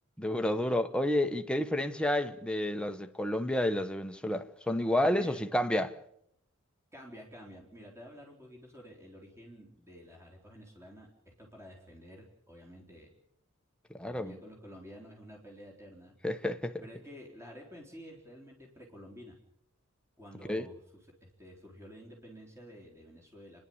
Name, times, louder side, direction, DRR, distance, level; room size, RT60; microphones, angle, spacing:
voice 1, 0.2-5.9 13.9-14.3 16.2-16.7 20.5-20.7, left 1 dB, 5° left, 1.1 m, -30 dB
voice 2, 5.1-5.4 6.9-13.1 14.0-16.2 16.8-19.4 20.2-20.8 21.2-23.6, equal, 15° right, 3.8 m, -50 dB
30.0 x 11.0 x 8.6 m
head